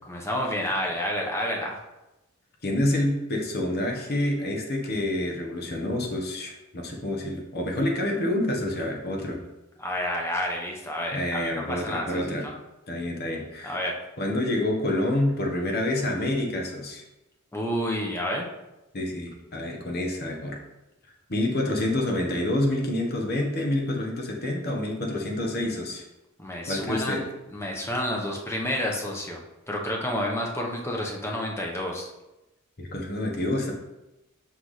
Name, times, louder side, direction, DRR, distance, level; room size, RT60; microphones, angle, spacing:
voice 1, 0.1-1.8 9.8-12.5 13.6-13.9 17.5-18.5 26.4-32.1, left 1 dB, 15° left, -1 dB, 1.0 m, -30 dB
voice 2, 2.6-9.4 11.1-12.5 12.9-13.8 14.2-17.0 18.9-20.6 21.3-26.0 26.7-27.2 32.8-33.7, left 1 dB, 50° left, 1 dB, 1.2 m, -27 dB
6.0 x 5.7 x 3.3 m, 0.96 s
head